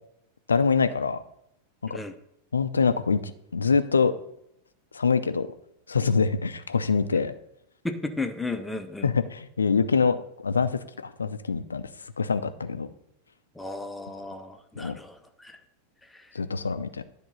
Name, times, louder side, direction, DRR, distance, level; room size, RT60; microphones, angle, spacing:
voice 1, 0.5-1.2 1.9-2.0 2.5-3.2 3.5-4.1 4.9-5.5 5.9-7.3 9.0-11.8 12.2-12.9 14.8-15.0 16.3-17.0, left 5 dB, 75° left, 11 dB, 0.5 m, -24 dB
voice 2, 7.8-9.1 13.6-15.6 16.1-16.3, left 2 dB, 5° left, 7 dB, 0.7 m, -34 dB
10.0 x 3.7 x 5.4 m, 0.78 s
figure-of-eight pair, 90°, 0 cm